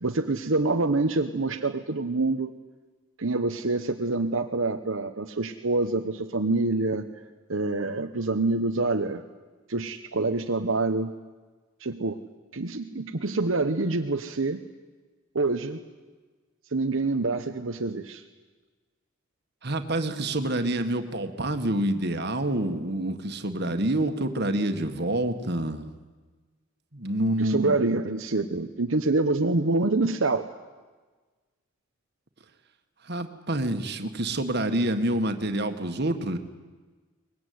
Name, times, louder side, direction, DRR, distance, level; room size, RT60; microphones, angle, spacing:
voice 1, 0.0-2.5 3.2-7.1 7.5-9.2 9.7-11.2 11.8-12.2 12.5-14.6 15.3-15.8 16.7-18.2 27.4-30.5, right 3 dB, 75° right, 4 dB, 1.1 m, -26 dB
voice 2, 19.6-25.9 26.9-27.8 33.0-36.4, right 1 dB, 50° right, 7 dB, 1.9 m, -27 dB
23.5 x 20.5 x 9.6 m, 1.3 s
head